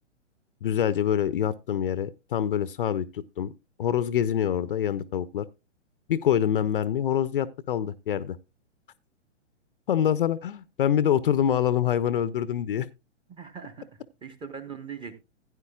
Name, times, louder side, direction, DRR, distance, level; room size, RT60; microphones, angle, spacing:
voice 1, 0.6-3.5 3.8-5.5 6.1-8.4 9.9-12.9, left 9 dB, 45° left, 0.6 m, -25 dB
voice 2, 13.3-15.1, right 6 dB, 15° right, 0.9 m, -41 dB
15.5 x 9.6 x 2.3 m
figure-of-eight pair, 115°, 37 cm